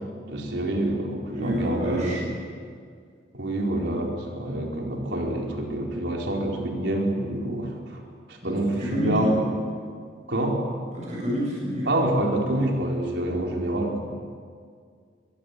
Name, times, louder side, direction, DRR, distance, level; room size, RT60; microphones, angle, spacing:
voice 1, 0.3-2.2 3.3-8.0 8.3-9.4 10.3-10.6 11.9-14.0, right 1 dB, 70° right, 0 dB, 4.5 m, -27 dB
voice 2, 1.3-2.4 8.4-9.3 10.9-12.0, equal, 40° right, -6 dB, 7.6 m, -29 dB
23.0 x 22.0 x 8.7 m, 2.1 s
head